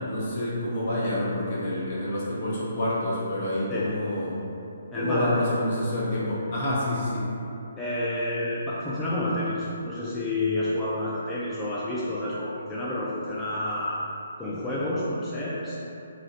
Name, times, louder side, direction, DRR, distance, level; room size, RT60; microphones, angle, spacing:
voice 1, 0.0-4.4 4.9-7.2, left 1 dB, 50° left, -7 dB, 0.9 m, -28 dB
voice 2, 4.9-5.4 7.8-14.0 14.4-15.8, left 1 dB, 10° left, -9 dB, 0.3 m, -29 dB
2.5 x 2.0 x 3.9 m, 2.8 s
figure-of-eight pair, 140°, 0 cm